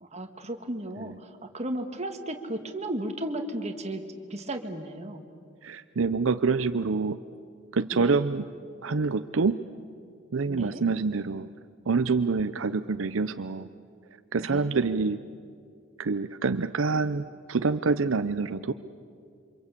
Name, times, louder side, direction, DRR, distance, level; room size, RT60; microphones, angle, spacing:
voice 1, 0.0-5.2 7.9-8.2 10.4-10.8 14.4-15.1, right 1 dB, 30° right, 5 dB, 1.9 m, -35 dB
voice 2, 5.6-7.2 7.7-8.5 8.8-9.6 10.3-11.5 11.9-13.7 14.3-15.2 16.0-18.7, right 4 dB, 75° right, 11 dB, 0.6 m, -26 dB
28.0 x 25.5 x 8.4 m, 2.3 s
head